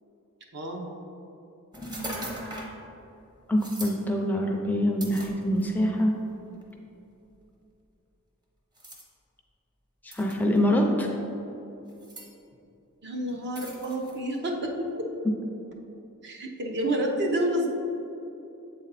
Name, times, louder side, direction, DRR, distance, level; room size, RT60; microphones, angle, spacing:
voice 1, 0.5-0.8 13.0-15.1 16.2-17.7, right 1 dB, 55° right, 1 dB, 0.8 m, -29 dB
sound 1, 1.7-2.8 3.6-4.0 5.0-5.8 6.6-6.7 8.8-9.0 10.1-10.6 11.9-12.3 13.6-14.2, right 1 dB, 20° right, 0.8 m, -39 dB
voice 2, 3.5-6.1 10.2-11.1, equal, 10° left, 1 dB, 0.4 m, -24 dB
7.5 x 4.2 x 4.0 m, 2.9 s
head